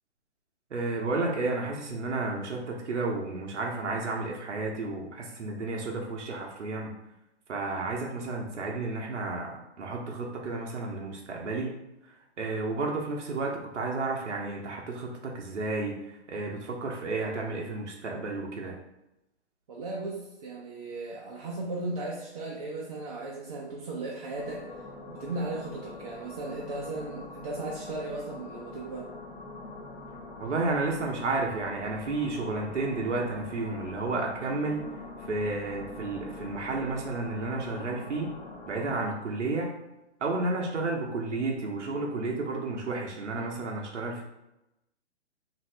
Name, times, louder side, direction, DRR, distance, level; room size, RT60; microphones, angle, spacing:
voice 1, 0.7-6.9 7.5-18.8 30.4-38.4 38.7-39.7 40.2-44.2, right 3 dB, 90° right, -1 dB, 0.7 m, -32 dB
voice 2, 19.7-24.7 25.1-29.1, right 2 dB, 35° right, -4 dB, 0.4 m, -36 dB
sound 1, 24.3-39.1, left 3 dB, 45° left, 0.8 m, -44 dB
2.6 x 2.5 x 3.2 m, 0.91 s
hypercardioid pair, 135°, 35 cm